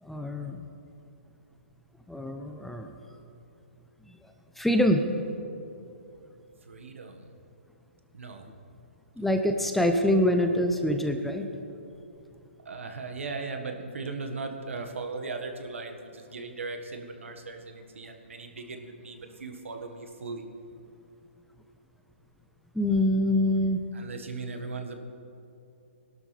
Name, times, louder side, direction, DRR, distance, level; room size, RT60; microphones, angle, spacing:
voice 1, 0.0-0.7 2.1-2.9 4.1-4.2 4.6-5.1 9.2-11.5 22.7-23.8, left 1 dB, ahead, 5 dB, 0.6 m, -25 dB
voice 2, 6.6-7.3 8.1-8.4 9.2-9.4 12.6-20.4 23.9-25.0, right 3 dB, 80° right, 5 dB, 1.6 m, -38 dB
20.0 x 12.0 x 3.3 m, 2.7 s
hypercardioid pair, 140°, 7 cm